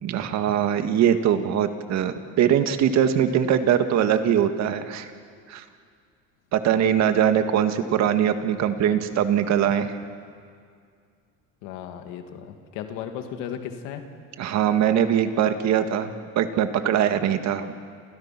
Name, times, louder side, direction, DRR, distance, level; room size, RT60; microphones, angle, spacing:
voice 1, 0.0-5.1 5.5-5.6 6.5-10.0 14.4-17.7, right 9 dB, 55° right, 8 dB, 1.9 m, -22 dB
voice 2, 6.9-7.3 11.6-14.0, left 9 dB, 90° left, 6 dB, 2.6 m, -36 dB
30.0 x 28.0 x 6.0 m, 2.2 s
cardioid pair, 125°, 32 cm